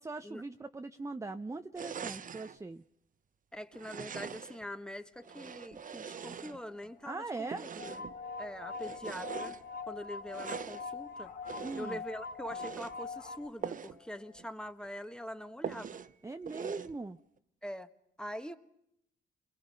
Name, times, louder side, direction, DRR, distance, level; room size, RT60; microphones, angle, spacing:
voice 1, 0.0-2.8 7.0-7.6 11.6-12.0 16.2-17.2, right 3 dB, 15° right, 7 dB, 0.8 m, -40 dB
sound 1, 1.7-2.6 3.7-4.7 5.2-6.9 7.5-8.2 8.7-9.6 10.3-10.9 11.4-12.0 12.5-13.0 13.6-14.0 14.4-14.5 14.8-14.9 15.6-16.1 16.5-17.0, right 7 dB, 40° right, 1.0 m, -42 dB
voice 2, 3.5-9.5 9.9-11.3 11.8-16.0 17.6-17.9 18.2-18.6, equal, 5° left, 10 dB, 1.5 m, -44 dB
sound 2, 5.1-14.5, left 7 dB, 85° left, 2.7 m, -63 dB
sound 3, 7.8-13.5, left 4 dB, 45° left, 1.8 m, -42 dB
30.0 x 22.5 x 5.4 m, 0.77 s
cardioid pair, 90°, 20 cm